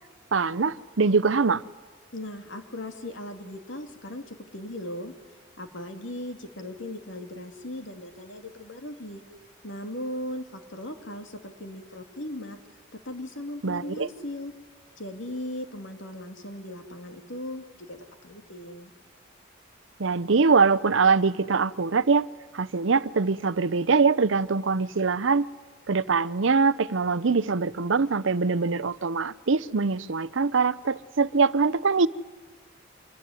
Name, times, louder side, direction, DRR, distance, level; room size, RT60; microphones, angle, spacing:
voice 1, 0.3-1.6 13.6-14.1 20.0-22.3 22.5-25.5 25.9-32.1, right 4 dB, 75° right, 0.7 m, -23 dB
voice 2, 2.1-5.1 5.6-9.2 9.6-12.6 12.9-14.5 15.0-18.9, left 1 dB, 75° left, 2.6 m, -38 dB
26.0 x 20.5 x 9.7 m
head